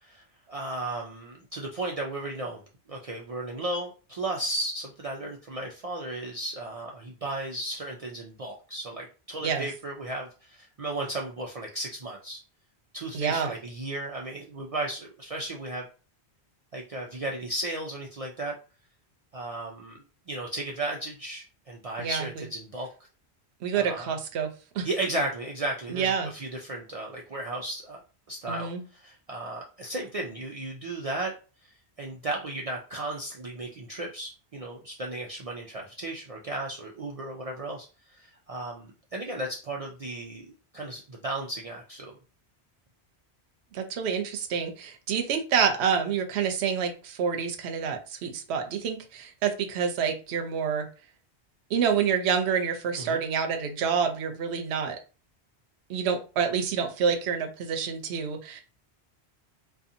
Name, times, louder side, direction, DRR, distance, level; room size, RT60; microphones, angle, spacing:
voice 1, 0.0-2.6 2.9-12.4 12.9-15.9 16.7-18.5 19.3-20.0 20.3-22.9 23.7-24.1 24.8-28.0 28.3-31.3 31.6-31.7 32.0-37.9 38.2-40.5 40.7-42.1 52.9-53.2, right 2 dB, 60° right, -1 dB, 0.3 m, -35 dB
voice 2, 13.1-13.5 22.0-22.3 23.6-24.5 24.7-24.9 25.9-26.3 28.5-28.8 43.7-50.9 51.7-55.0 55.9-58.6, right 6 dB, 80° right, 5 dB, 0.8 m, -28 dB
2.7 x 2.3 x 2.5 m, 0.34 s
omnidirectional pair, 1.1 m